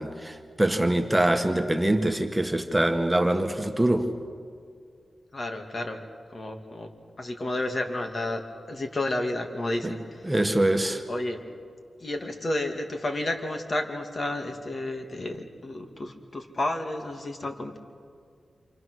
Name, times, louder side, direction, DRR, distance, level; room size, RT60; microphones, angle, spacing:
voice 1, 0.0-4.1 9.8-9.9 10.3-11.0, right 1 dB, 15° right, 1.8 m, -24 dB
voice 2, 5.3-6.0 6.3-6.9 7.2-8.4 8.7-10.3 10.7-11.4 12.0-17.8, left 1 dB, 45° left, 2.4 m, -31 dB
27.5 x 27.5 x 6.4 m
cardioid pair, 60°, 0 cm